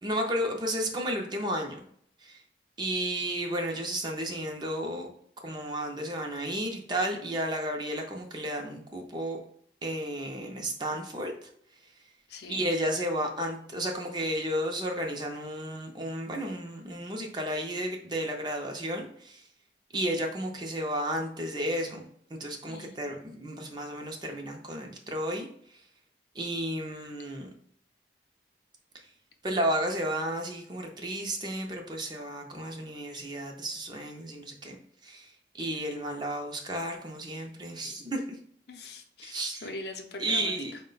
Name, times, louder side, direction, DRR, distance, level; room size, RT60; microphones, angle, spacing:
voice 1, 0.0-1.8 2.2-2.4 2.8-5.1 5.4-9.4 9.8-11.5 12.5-19.5 19.9-22.0 22.4-25.5 25.7-25.8 26.3-27.5 29.4-34.8 35.0-38.2 39.2-39.7 40.2-40.7, right 1 dB, 25° right, 2 dB, 0.5 m, -32 dB
voice 2, 12.3-12.7 22.7-23.0 38.7-40.8, left 2 dB, 65° left, 4 dB, 0.6 m, -42 dB
4.6 x 2.1 x 3.8 m, 0.65 s
head